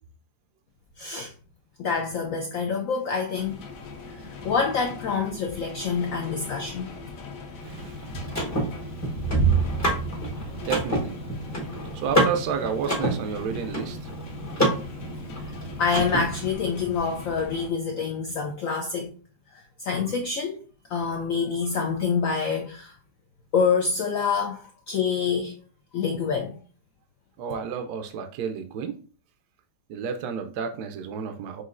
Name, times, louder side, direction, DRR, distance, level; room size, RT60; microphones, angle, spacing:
voice 1, 1.0-1.3 1.8-3.6 4.4-7.0 15.4-19.1 19.5-20.6 20.9-22.9 23.5-25.5 25.9-26.6, left 5 dB, 80° left, 0.7 m, -27 dB
sound 1, 3.3-17.7, right 3 dB, 55° left, 1.1 m, -34 dB
Car / Mechanisms, 7.6-16.5, right 1 dB, 20° left, 0.5 m, -29 dB
voice 2, 7.6-8.0 10.6-11.2 11.9-14.1 27.4-29.0 29.9-31.6, right 6 dB, 70° right, 1.0 m, -31 dB
6.1 x 2.7 x 2.4 m
omnidirectional pair, 2.0 m